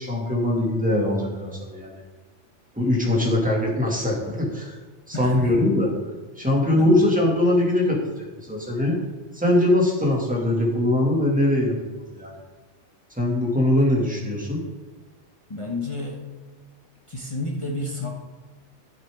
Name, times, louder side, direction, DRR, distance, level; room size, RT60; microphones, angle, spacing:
voice 1, 0.0-2.0 2.8-4.8 5.1-5.9 6.4-9.0 9.3-11.8 12.1-12.3 13.2-14.6, left 1 dB, 5° right, -3 dB, 2.2 m, -22 dB
voice 2, 5.1-5.5 6.7-7.1 15.5-16.2 17.1-18.1, left 2 dB, 25° left, -1 dB, 1.2 m, -30 dB
11.0 x 7.3 x 3.6 m, 1.3 s
omnidirectional pair, 1.2 m